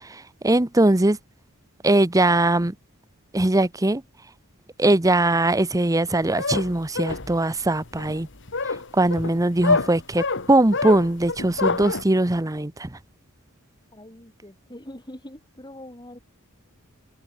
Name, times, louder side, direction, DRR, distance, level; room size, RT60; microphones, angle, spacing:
voice 1, 0.4-1.2 1.8-2.7 3.3-4.0 4.8-8.3 8.9-12.9, right 2 dB, 15° right, 0.8 m, -20 dB
sound 1, 6.1-12.0, left 4 dB, 55° left, 1.9 m, -27 dB
voice 2, 13.9-16.2, left 1 dB, 20° left, 5.3 m, -43 dB
head